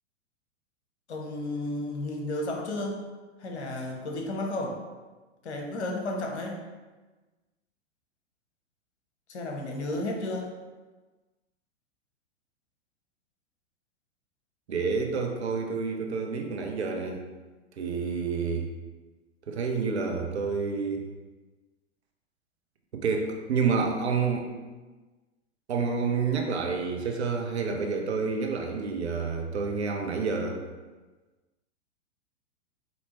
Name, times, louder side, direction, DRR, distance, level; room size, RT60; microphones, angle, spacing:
voice 1, 1.1-3.0 3.4-4.8 5.4-6.6 9.3-10.5, left 1 dB, 60° left, 1 dB, 0.9 m, -32 dB
voice 2, 14.7-17.2 17.8-18.7 19.5-21.0 22.9-24.5 25.7-30.6, right 5 dB, 60° right, 3 dB, 0.7 m, -29 dB
4.4 x 2.8 x 2.9 m, 1.2 s
figure-of-eight pair, 105°, 37 cm